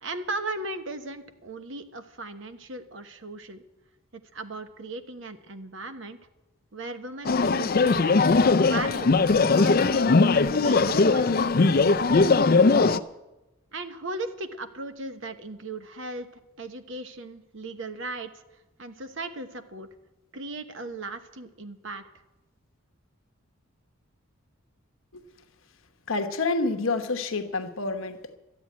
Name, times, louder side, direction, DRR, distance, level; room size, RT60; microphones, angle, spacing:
voice 1, 0.0-3.6 4.1-6.2 6.7-8.2 8.6-10.1 10.5-12.4 13.7-16.3 16.6-18.3 18.8-19.9 20.3-22.0, right 2 dB, 60° right, 1.1 m, -37 dB
sound 1, 7.2-13.0, left 3 dB, 45° left, 0.5 m, -20 dB
voice 2, 26.1-28.4, left 3 dB, 75° left, 1.1 m, -28 dB
13.0 x 8.5 x 9.3 m
head